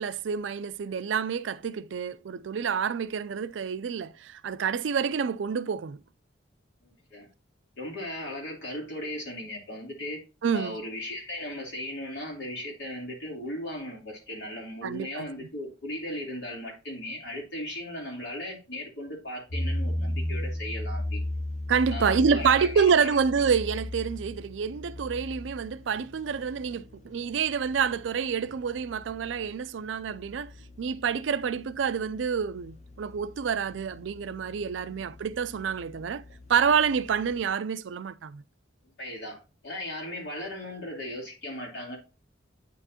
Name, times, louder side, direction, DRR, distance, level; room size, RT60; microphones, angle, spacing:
voice 1, 0.0-6.0 10.4-10.8 14.8-15.5 21.7-30.5 30.8-36.2 36.5-38.4, right 6 dB, 80° right, 0.4 m, -28 dB
voice 2, 6.8-7.3 7.8-10.2 10.5-21.2 21.9-23.1 39.0-42.0, left 1 dB, 65° left, 3.1 m, -37 dB
sound 1, 19.5-37.4, left 1 dB, 35° left, 0.8 m, -38 dB
8.8 x 4.5 x 2.8 m
head